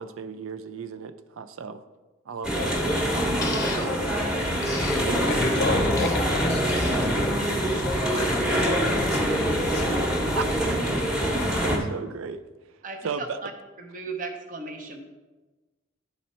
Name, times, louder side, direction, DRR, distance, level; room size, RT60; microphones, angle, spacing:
voice 1, 0.0-1.8 2.3-2.8 5.1-5.3 8.1-8.7 10.3-10.8 11.6-12.4 13.0-13.4, right 5 dB, 85° right, 11 dB, 0.4 m, -35 dB
sound 1, 2.4-11.8, equal, 5° right, 1.0 m, -24 dB
sound 2, 3.4-3.9 4.6-5.1 6.0-6.2 6.7-7.1 8.0-8.4, left 3 dB, 15° left, 0.7 m, -35 dB
voice 2, 5.3-9.9, left 3 dB, 55° left, 7 dB, 0.6 m, -33 dB
voice 3, 12.8-13.5 13.8-15.0, right 3 dB, 40° right, 4 dB, 0.7 m, -36 dB
10.5 x 4.2 x 4.2 m, 1.2 s
head